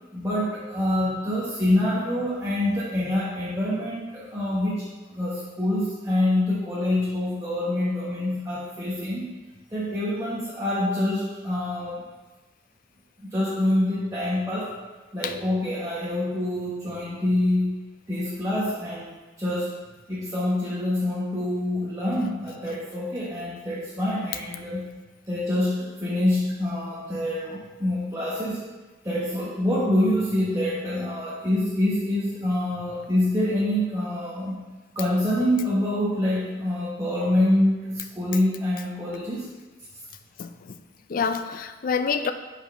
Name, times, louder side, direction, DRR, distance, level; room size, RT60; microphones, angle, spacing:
voice 1, 0.1-4.8 5.1-9.3 9.7-12.0 13.2-14.8 15.1-17.8 18.1-19.1 19.4-19.7 20.1-24.9 25.3-28.6 29.0-34.6 34.9-39.4, left 1 dB, 15° right, -9 dB, 1.2 m, -26 dB
voice 2, 40.4-40.8 41.1-42.3, left 6 dB, 45° left, 9 dB, 0.4 m, -27 dB
5.5 x 4.5 x 5.4 m, 1.2 s
head